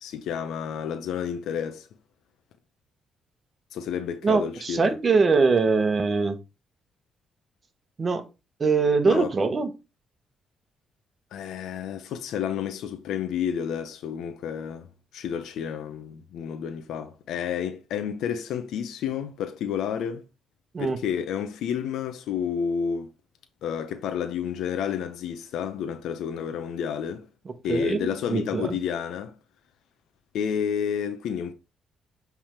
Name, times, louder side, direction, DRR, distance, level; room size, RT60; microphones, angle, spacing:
voice 1, 0.0-1.9 3.7-4.9 9.1-9.3 11.3-14.9 15.1-20.2 20.8-23.1 23.6-27.3 27.6-29.4 30.3-31.5, left 8 dB, 80° left, 0.7 m, -30 dB
voice 2, 4.2-6.4 8.0-8.2 8.6-9.7 20.7-21.0 27.4-28.8, right 4 dB, 35° right, 1.1 m, -23 dB
7.2 x 3.5 x 4.4 m
cardioid pair, 90°, 0 cm